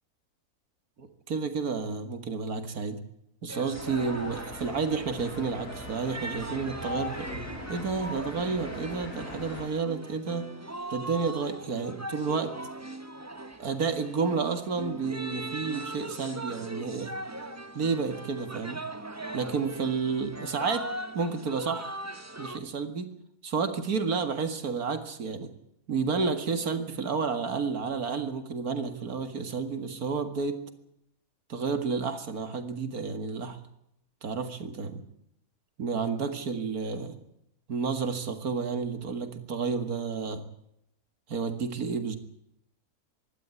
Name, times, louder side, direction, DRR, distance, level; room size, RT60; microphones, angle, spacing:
voice 1, 1.0-3.0 3.4-7.3 7.7-10.5 10.9-12.5 13.6-17.1 17.7-18.8 19.3-20.9 21.1-21.9 22.4-23.1 23.4-25.5 25.9-30.6 31.5-33.6 34.2-35.0 35.8-37.2 37.7-40.5 41.3-42.2, right 5 dB, 75° right, 8 dB, 2.4 m, -31 dB
sound 1, 3.5-22.6, right 1 dB, 15° right, 0.9 m, -40 dB
sound 2, 3.7-9.6, left 2 dB, 60° left, 6.4 m, -42 dB
25.0 x 12.0 x 9.7 m, 0.79 s
omnidirectional pair, 1.6 m